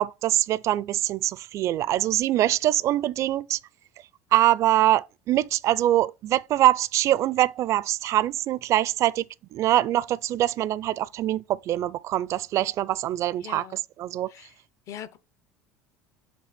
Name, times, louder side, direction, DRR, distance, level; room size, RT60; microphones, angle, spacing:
voice 1, 0.0-3.6 4.3-9.2 9.5-13.6 14.0-14.3, right 13 dB, 50° right, 0.4 m, -23 dB
voice 2, 13.4-13.8 14.3-14.6 14.9-15.2, left 10 dB, 50° left, 0.8 m, -41 dB
7.3 x 2.8 x 5.9 m
hypercardioid pair, 85°, 7 cm